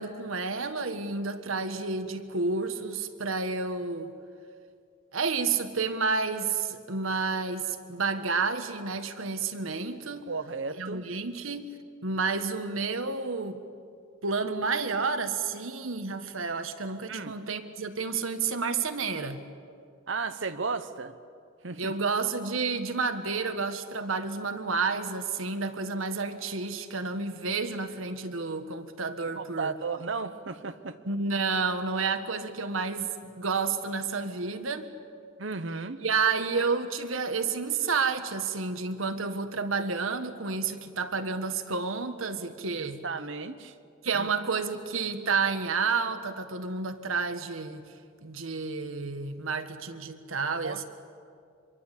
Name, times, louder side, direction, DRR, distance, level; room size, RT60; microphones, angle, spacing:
voice 1, 0.0-4.1 5.1-10.3 10.8-11.7 12.0-13.6 14.2-19.4 21.8-29.7 31.0-34.9 36.0-43.0 44.0-47.8 48.2-50.8, right 4 dB, 85° right, 8 dB, 1.7 m, -30 dB
voice 2, 10.3-11.1 17.1-17.3 20.1-21.2 21.6-21.9 29.3-31.0 35.4-36.0 42.8-43.7 44.1-44.3 50.6-50.8, right 4 dB, 65° right, 9 dB, 1.1 m, -34 dB
25.5 x 23.0 x 8.6 m, 2.3 s
head